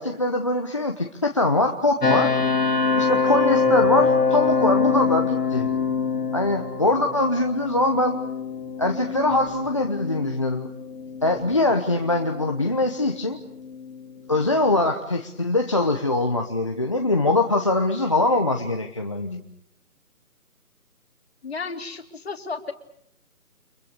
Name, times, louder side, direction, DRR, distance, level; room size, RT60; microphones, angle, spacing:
voice 1, 0.0-2.3 3.0-5.7 6.3-8.2 8.8-10.7 11.2-13.4 14.3-19.4, left 2 dB, 20° left, 2 dB, 1.0 m, -22 dB
sound 1, 2.0-14.8, left 5 dB, 85° left, 3.8 m, -25 dB
voice 2, 21.4-22.7, left 4 dB, 40° left, 6 dB, 2.9 m, -33 dB
30.0 x 25.5 x 6.7 m, 0.74 s
figure-of-eight pair, 170°, 46 cm